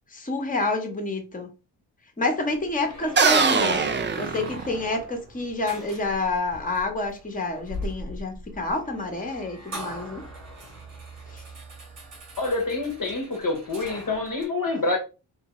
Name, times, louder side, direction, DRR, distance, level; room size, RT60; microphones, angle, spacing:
voice 1, 0.1-1.5 2.2-10.2 11.3-11.4, left 2 dB, 15° left, 0.9 m, -28 dB
sound 1, 2.5-14.5, equal, 80° right, 1.6 m, -41 dB
sound 2, 3.2-5.1, right 5 dB, 25° right, 0.4 m, -22 dB
voice 2, 12.4-15.0, left 3 dB, 40° left, 0.9 m, -27 dB
2.8 x 2.2 x 3.0 m
supercardioid pair, 50°, 48 cm